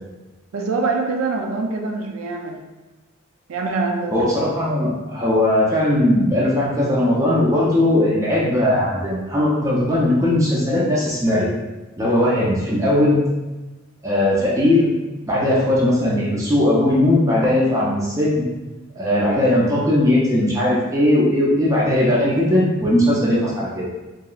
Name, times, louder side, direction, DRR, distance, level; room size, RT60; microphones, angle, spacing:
voice 1, 0.5-2.6 3.5-4.1, right 3 dB, 80° right, 3 dB, 0.4 m, -24 dB
voice 2, 4.1-11.5 12.0-13.2 14.0-14.9 15.3-18.4 19.0-23.9, left 1 dB, 15° right, -5 dB, 0.4 m, -18 dB
2.8 x 2.3 x 2.3 m, 1.1 s
head